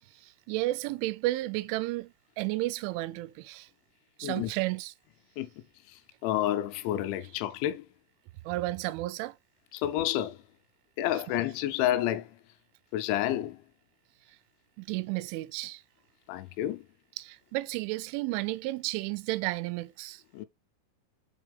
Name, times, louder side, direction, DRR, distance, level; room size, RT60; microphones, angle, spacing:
voice 1, 0.1-3.7 4.2-4.9 8.5-9.4 14.8-15.8 17.2-20.2, right 19 dB, 85° right, 3.0 m, -32 dB
voice 2, 5.9-7.9 9.7-10.4 11.0-12.4 12.9-13.6 16.3-16.8 20.3-20.5, left 13 dB, 80° left, 2.9 m, -30 dB
6.6 x 5.3 x 3.5 m
omnidirectional pair, 5.5 m